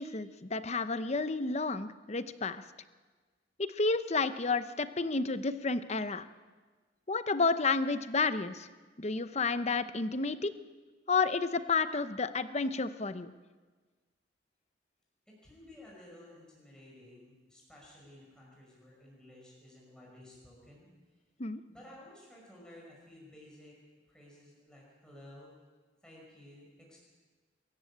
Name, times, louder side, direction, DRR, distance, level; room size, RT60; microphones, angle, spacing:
voice 1, 0.0-2.6 3.6-6.2 7.1-8.7 9.0-10.5 11.1-13.3 21.4-21.6, left 4 dB, 35° left, 12 dB, 0.8 m, -31 dB
voice 2, 15.3-20.9 21.7-23.8 24.1-25.5 26.0-27.0, left 1 dB, 5° left, -4 dB, 5.6 m, -54 dB
23.5 x 14.0 x 8.8 m, 1.4 s
head